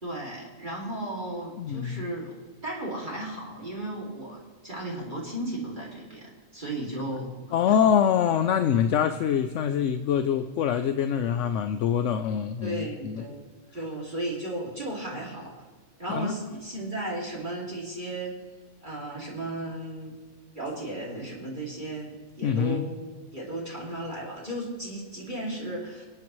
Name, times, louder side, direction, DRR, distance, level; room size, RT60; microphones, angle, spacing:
voice 1, 0.0-7.4 7.7-7.9 9.0-9.1 12.6-13.3 13.7-15.5 16.0-18.3 18.8-20.1 20.5-23.0 23.3-26.0, right 1 dB, 35° right, -4 dB, 2.5 m, -35 dB
voice 2, 1.6-2.1 7.5-13.3 16.1-16.3 22.4-22.9, left 8 dB, 70° left, 7 dB, 0.9 m, -25 dB
24.5 x 8.7 x 3.1 m, 1.5 s
omnidirectional pair, 1.4 m